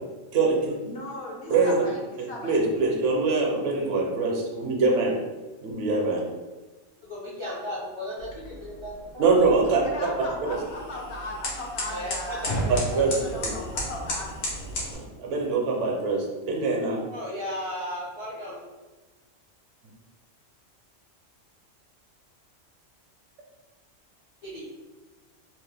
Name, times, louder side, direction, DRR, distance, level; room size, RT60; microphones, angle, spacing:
voice 1, 0.3-0.8 1.5-1.7 2.4-5.1 5.6-6.2 9.2-9.8 13.0-13.2 13.4-13.5 14.9-17.0, right 3 dB, 70° right, 0 dB, 0.9 m, -23 dB
voice 2, 0.9-2.6 9.8-14.3, left 2 dB, 65° left, -2 dB, 0.8 m, -37 dB
voice 3, 7.1-9.5 11.8-13.4 17.1-18.7 24.4-24.7, left 1 dB, 40° left, -7 dB, 0.4 m, -36 dB
sound 1, 8.2-15.0, equal, 80° left, 1.2 m, -34 dB
2.8 x 2.1 x 3.2 m, 1.2 s
omnidirectional pair, 1.3 m